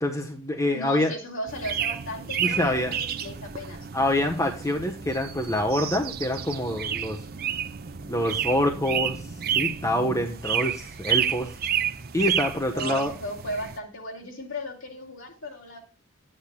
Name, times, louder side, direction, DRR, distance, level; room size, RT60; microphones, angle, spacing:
voice 1, 0.0-1.1 2.4-2.9 3.9-7.2 8.1-9.2 9.5-11.5 12.1-13.1, left 1 dB, 15° left, 3 dB, 0.9 m, -26 dB
voice 2, 0.7-3.9 12.6-15.8, left 1 dB, 70° left, 1 dB, 2.8 m, -36 dB
sound 1, 1.5-13.8, right 8 dB, 45° right, 0.6 m, -30 dB
11.5 x 8.8 x 2.2 m, 0.34 s
head